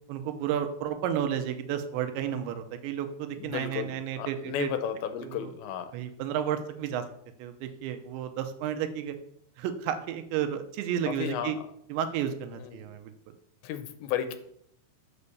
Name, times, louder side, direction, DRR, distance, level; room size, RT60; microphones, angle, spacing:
voice 1, 0.1-4.7 5.2-5.5 5.9-7.0 7.4-9.2 9.6-11.6 11.9-13.1, right 9 dB, 85° right, 7 dB, 3.1 m, -32 dB
voice 2, 3.4-5.9 11.1-11.7 12.5-12.8 13.6-14.4, left 9 dB, 90° left, 9 dB, 3.1 m, -34 dB
8.4 x 5.4 x 6.8 m, 0.70 s
omnidirectional pair, 5.1 m